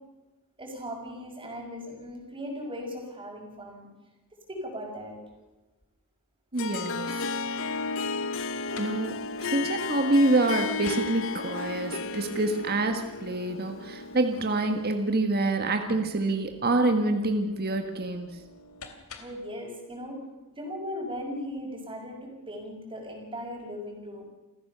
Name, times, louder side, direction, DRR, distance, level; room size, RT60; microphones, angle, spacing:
voice 1, 0.6-3.9 4.5-5.2 19.2-20.2 20.5-24.2, equal, 25° right, -6 dB, 5.2 m, -38 dB
voice 2, 6.5-7.3 8.8-9.1 9.4-18.4, right 2 dB, 45° right, 5 dB, 1.6 m, -26 dB
Harp, 6.6-15.0, left 4 dB, 65° left, 0.9 m, -33 dB
sound 1, 8.3-19.5, left 2 dB, 85° left, 3.1 m, -51 dB
29.0 x 15.0 x 6.9 m, 1.1 s
head